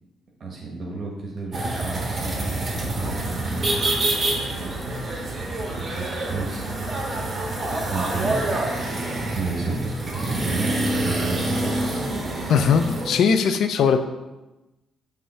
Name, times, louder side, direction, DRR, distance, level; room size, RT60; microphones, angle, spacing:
voice 1, 0.4-6.6 7.3-8.6 9.3-11.8, right 3 dB, 50° right, -2 dB, 1.4 m, -33 dB
sound 1, 1.5-13.1, right 1 dB, 30° right, 1.6 m, -27 dB
voice 2, 12.5-14.0, left 6 dB, 70° left, 9 dB, 0.4 m, -19 dB
5.5 x 3.7 x 5.6 m, 1.0 s
cardioid pair, 90°, 0 cm